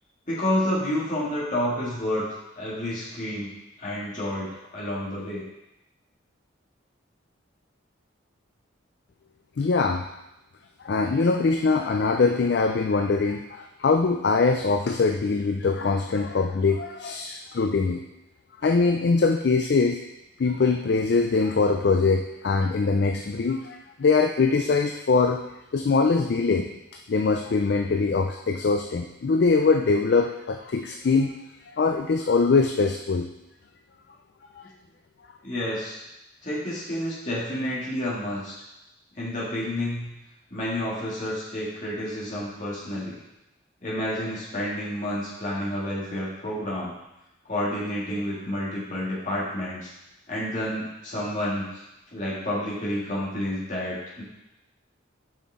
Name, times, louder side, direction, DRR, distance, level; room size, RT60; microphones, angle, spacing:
voice 1, 0.3-2.3 2.6-3.5 3.8-5.4 35.4-36.0 36.4-38.6 39.2-40.1 40.5-43.2 43.8-46.9 47.4-49.9 50.3-51.8 52.1-54.2, left 1 dB, 40° left, -7 dB, 2.4 m, -29 dB
voice 2, 9.6-10.1 10.8-18.0 18.6-20.0 20.4-25.4 25.7-26.8 27.1-31.3 31.8-33.3, left 4 dB, 55° left, 5 dB, 0.4 m, -22 dB
7.1 x 5.8 x 3.7 m, 0.92 s
head